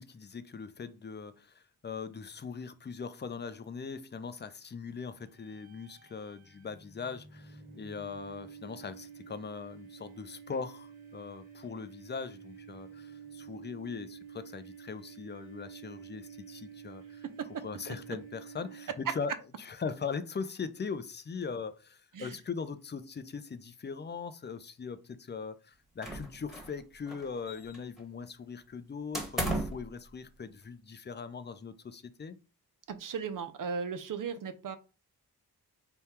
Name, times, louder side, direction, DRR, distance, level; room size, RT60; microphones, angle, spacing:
voice 1, 0.0-17.2 17.6-32.3, left 5 dB, 30° left, 0.4 m, -40 dB
sound 1, 5.3-19.3, right 7 dB, 20° right, 1.5 m, -50 dB
voice 2, 17.2-17.6 22.1-22.4 32.9-34.8, right 6 dB, 55° right, 0.6 m, -37 dB
sound 2, 26.0-26.8 27.1-28.0 29.1-29.9, right 1 dB, ahead, 1.2 m, -35 dB
3.5 x 2.3 x 4.3 m
cardioid pair, 70°, 39 cm